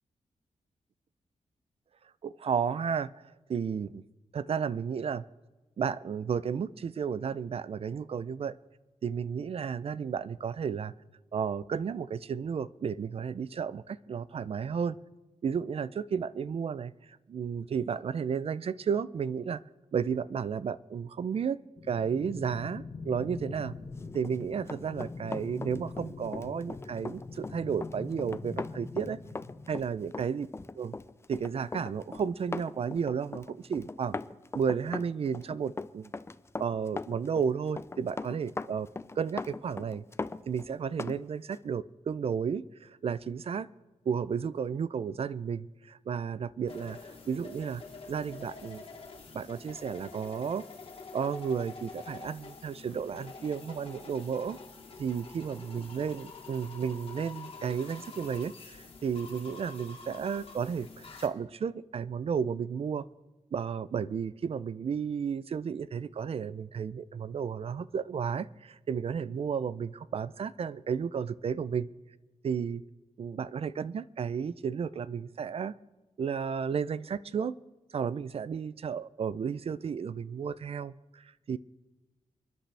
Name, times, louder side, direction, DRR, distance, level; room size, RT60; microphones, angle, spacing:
voice 1, 2.2-4.0 4.3-5.2 5.8-8.6 9.0-10.9 11.3-15.0 15.4-19.6 19.9-21.6 21.9-23.7 24.1-29.2 29.7-30.5 30.8-31.0 31.3-34.2 34.5-36.1 36.6-38.9 39.2-40.0 40.5-43.7 44.1-47.8 48.1-48.8 49.3-50.6 51.1-54.6 55.0-63.1 63.5-71.9 72.4-72.8 73.2-75.7 76.2-77.6 77.9-81.6, right 7 dB, 50° right, 17 dB, 0.4 m, -33 dB
sound 1, 21.8-29.8, left 3 dB, 35° left, 1.6 m, -43 dB
Run, 24.1-41.2 41.5-41.7, left 3 dB, 20° left, 0.5 m, -40 dB
sound 2, 46.7-61.3, left 4 dB, 50° left, 2.2 m, -47 dB
29.0 x 10.5 x 3.4 m, 1.1 s
wide cardioid pair, 115°, 12 cm